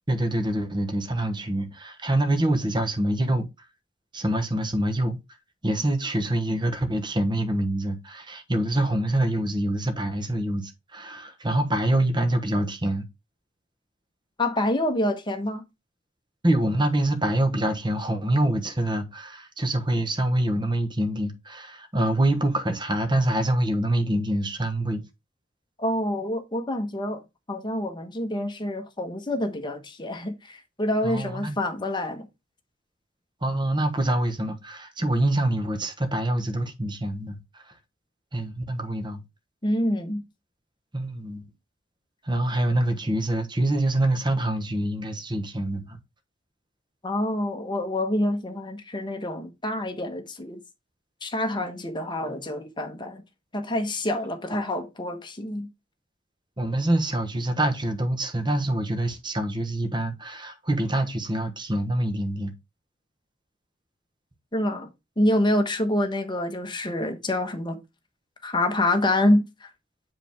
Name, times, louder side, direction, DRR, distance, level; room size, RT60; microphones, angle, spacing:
voice 1, 0.1-3.5 4.1-5.2 5.6-13.0 16.4-25.0 31.0-31.6 33.4-37.7 38.3-39.2 40.9-41.5 42.2-46.0 56.6-62.5, right 1 dB, 25° right, 1.2 m, -25 dB
voice 2, 14.4-15.6 25.8-27.2 27.5-32.3 39.6-40.2 47.0-50.6 51.2-53.2 53.5-55.7 64.5-64.9 65.2-67.8 68.4-69.7, left 1 dB, 25° left, 1.1 m, -26 dB
7.6 x 5.0 x 3.5 m
head